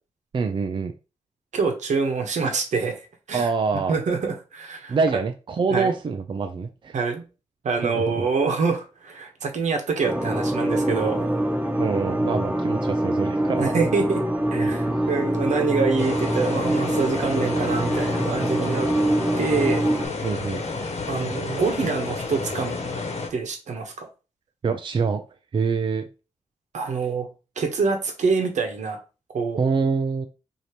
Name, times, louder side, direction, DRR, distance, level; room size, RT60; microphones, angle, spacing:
voice 1, 0.3-0.9 3.3-3.9 4.9-7.0 7.8-8.3 11.8-13.7 14.6-15.1 20.2-20.6 24.6-25.2 25.5-26.1 29.6-30.3, right 5 dB, 45° right, 6 dB, 0.4 m, -25 dB
voice 2, 1.5-3.5 3.9-5.0 5.7-5.9 6.9-7.2 7.6-11.3 13.7-14.2 14.5-18.9 19.4-19.9 21.1-22.8 23.3-24.1 26.7-27.3 27.6-29.0 29.3-29.6, right 4 dB, 85° right, 4 dB, 1.0 m, -25 dB
sound 1, 10.0-20.1, right 1 dB, 15° right, 0.9 m, -25 dB
sound 2, 16.0-23.3, left 3 dB, 65° left, 1.1 m, -30 dB
4.8 x 2.8 x 2.9 m, 0.32 s
wide cardioid pair, 100°, 12 cm